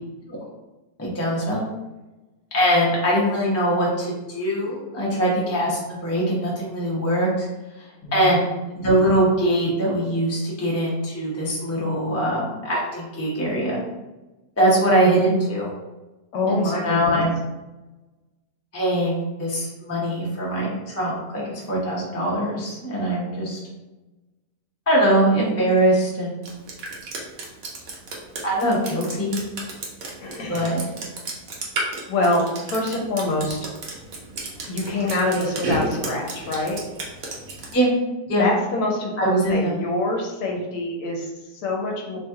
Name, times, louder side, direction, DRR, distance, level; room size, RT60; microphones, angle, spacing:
voice 1, 1.0-1.7 2.5-7.5 7.8-13.8 14.6-15.7 16.5-17.3 18.7-23.6 24.9-26.4 28.4-29.4 30.5-30.8 37.7-37.9 38.3-38.5 39.2-39.8, right 1 dB, 15° left, -5 dB, 0.5 m, -22 dB
voice 2, 8.0-8.4 16.3-17.2 30.2-30.7 32.1-33.6 34.7-36.8 38.4-42.2, left 2 dB, 70° left, 0 dB, 1.2 m, -25 dB
Drip, 26.4-37.7, right 2 dB, 60° right, 1.1 m, -32 dB
3.1 x 2.9 x 3.5 m, 1.1 s
omnidirectional pair, 1.8 m